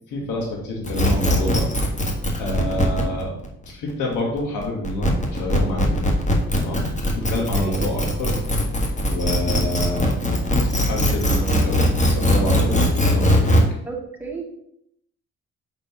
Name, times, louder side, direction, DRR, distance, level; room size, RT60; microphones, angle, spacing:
voice 1, 0.1-1.7 2.4-3.3 3.7-6.0 6.5-8.4 9.1-10.1 10.8-13.6, left 1 dB, 80° left, -2 dB, 1.9 m, -27 dB
sound 1, 0.8-13.6, equal, 25° left, 1.6 m, -20 dB
voice 2, 7.3-7.9 13.8-14.4, right 4 dB, 5° right, -3 dB, 2.0 m, -33 dB
5.1 x 4.5 x 6.0 m, 0.75 s
cardioid pair, 90°, 30 cm